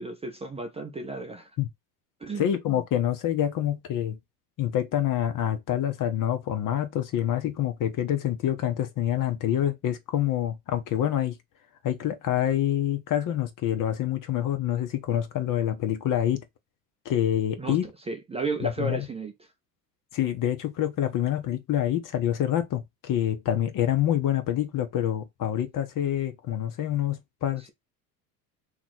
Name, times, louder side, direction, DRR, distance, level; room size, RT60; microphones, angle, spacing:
voice 1, 0.0-1.5 2.2-2.5 17.6-19.3, right 3 dB, 15° right, 0.6 m, -33 dB
voice 2, 2.4-4.2 4.6-11.3 11.8-16.4 17.0-17.9 18.6-19.1 20.1-27.6, left 11 dB, 40° left, 1.0 m, -26 dB
2.9 x 2.5 x 4.2 m
hypercardioid pair, 90°, 48 cm